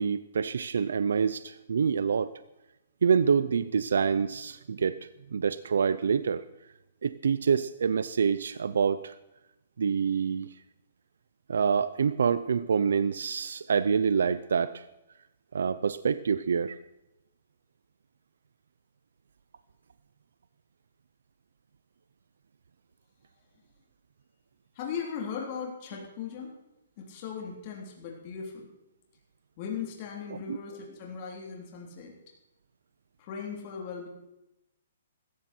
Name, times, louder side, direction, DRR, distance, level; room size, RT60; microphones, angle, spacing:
voice 1, 0.0-2.3 3.0-6.4 7.0-9.1 9.8-10.5 11.5-14.8 15.5-16.8 30.5-30.6, right 6 dB, 80° right, 15 dB, 0.6 m, -26 dB
voice 2, 24.8-26.5 27.0-28.7 29.6-32.1 33.2-34.1, left 6 dB, 35° left, -1 dB, 3.5 m, -38 dB
16.0 x 13.5 x 4.5 m, 0.91 s
hypercardioid pair, 160°, 0 cm